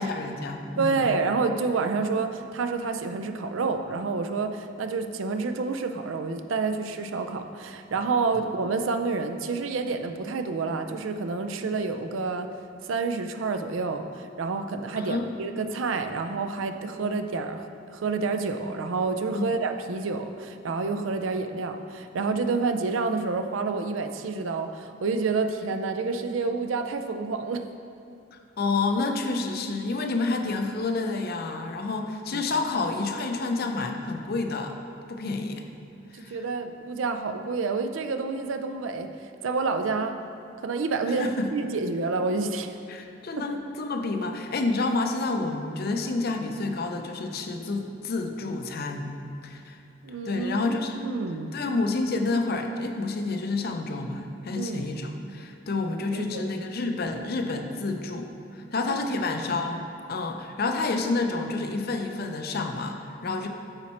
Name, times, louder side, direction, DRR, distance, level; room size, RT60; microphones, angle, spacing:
voice 1, 0.0-1.1 15.0-15.3 19.3-19.5 28.3-34.7 35.1-35.6 36.1-36.4 41.1-41.5 42.9-49.1 49.4-49.8 50.2-51.0 51.5-63.5, left 3 dB, 50° left, 4 dB, 0.5 m, -29 dB
voice 2, 0.8-12.5 12.9-17.6 17.9-27.7 32.3-32.5 36.2-40.2 40.6-42.7 43.4-43.6 50.0-51.6 54.6-54.9 56.1-56.4, right 4 dB, 85° right, 7 dB, 0.4 m, -29 dB
8.8 x 4.2 x 4.3 m, 2.5 s
head